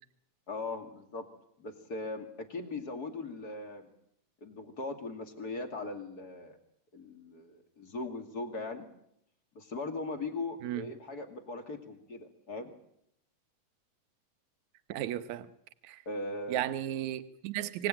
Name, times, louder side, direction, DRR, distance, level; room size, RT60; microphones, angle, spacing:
voice 1, 0.5-1.3 1.6-3.9 4.4-6.6 6.9-8.9 9.5-12.7 16.1-16.6, left 2 dB, 35° left, 6 dB, 2.6 m, -39 dB
voice 2, 14.9-15.5 15.8-16.0 16.5-17.9, right 13 dB, 75° right, 12 dB, 2.3 m, -34 dB
25.0 x 18.0 x 9.0 m, 0.76 s
omnidirectional pair, 3.5 m